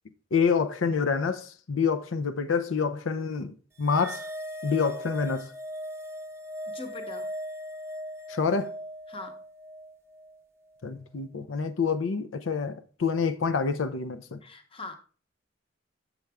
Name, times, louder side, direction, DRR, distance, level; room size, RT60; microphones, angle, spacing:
voice 1, 0.3-3.5 3.8-4.3 4.6-5.5 8.3-8.7 10.8-14.4, left 5 dB, 85° left, 0.6 m, -27 dB
sound 1, 3.8-10.4, equal, 15° right, 0.6 m, -39 dB
voice 2, 6.7-7.3 9.1-9.4 14.4-14.9, left 2 dB, 30° left, 0.9 m, -41 dB
7.8 x 6.1 x 3.4 m
head